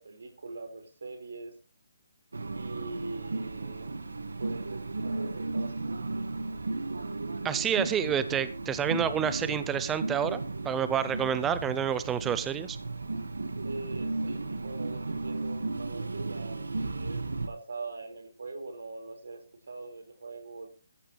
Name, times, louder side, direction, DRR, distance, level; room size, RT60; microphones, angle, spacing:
voice 1, 0.0-1.5 2.5-3.9 4.4-5.7 13.6-20.7, right 3 dB, 75° right, 7 dB, 4.7 m, -42 dB
sound 1, 2.3-17.5, right 3 dB, 90° right, 1.7 m, -35 dB
voice 2, 7.4-12.8, right 8 dB, 10° right, 13 dB, 0.6 m, -29 dB
14.5 x 14.0 x 3.2 m, 0.32 s
hypercardioid pair, 155°, 0 cm